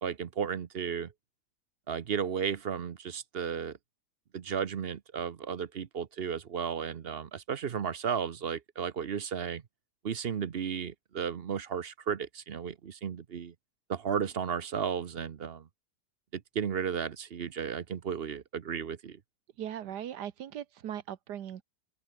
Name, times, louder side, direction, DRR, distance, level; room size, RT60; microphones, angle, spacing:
voice 1, 0.0-1.1 1.9-3.8 4.3-9.6 10.0-13.5 13.9-15.7 16.3-19.2, right 7 dB, 45° right, 0.9 m, -34 dB
voice 2, 19.6-21.6, right 10 dB, 85° right, 1.7 m, -39 dB
open air
omnidirectional pair, 1.7 m